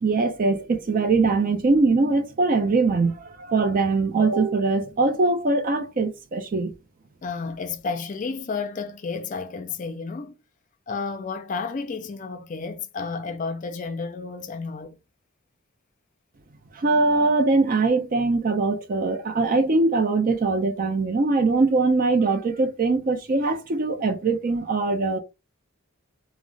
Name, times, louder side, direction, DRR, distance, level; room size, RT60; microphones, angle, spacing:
voice 1, 0.0-6.7 16.7-25.2, right 3 dB, 40° right, 0.4 m, -22 dB
voice 2, 7.2-10.3 10.9-15.0, left 4 dB, 40° left, 0.4 m, -31 dB
2.4 x 2.0 x 3.8 m
head